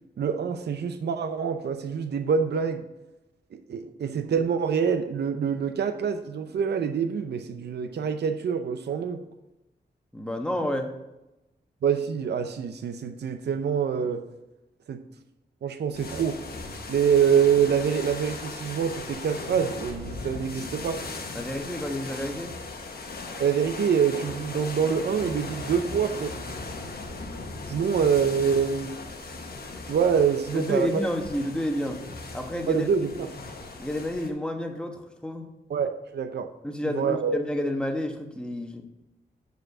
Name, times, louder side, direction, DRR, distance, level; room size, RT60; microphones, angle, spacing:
voice 1, 0.2-2.8 3.5-9.2 11.8-14.3 14.9-15.0 15.6-16.4 16.9-21.0 23.4-26.4 27.7-29.0 29.9-31.0 32.7-33.3 35.7-36.5 36.8-37.3, right 7 dB, 70° right, 8 dB, 0.6 m, -25 dB
voice 2, 10.1-10.9 21.3-22.6 30.5-32.0 32.3-33.1 33.8-35.5 36.6-38.9, left 1 dB, 5° left, 3 dB, 1.1 m, -30 dB
sound 1, 15.9-34.3, left 3 dB, 60° left, 1.1 m, -38 dB
6.4 x 5.1 x 6.4 m, 0.96 s
wide cardioid pair, 95°, 18 cm